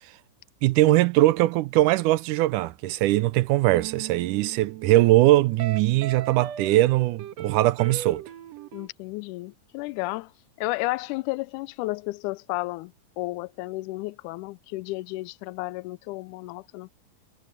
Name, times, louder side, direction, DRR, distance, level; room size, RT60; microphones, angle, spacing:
voice 1, 0.6-8.2, right 16 dB, 80° right, 2.0 m, -21 dB
sound 1, 3.7-8.9, right 11 dB, 65° right, 2.1 m, -38 dB
voice 2, 8.7-10.3 10.6-16.9, left 21 dB, 80° left, 1.9 m, -32 dB
omnidirectional pair, 3.8 m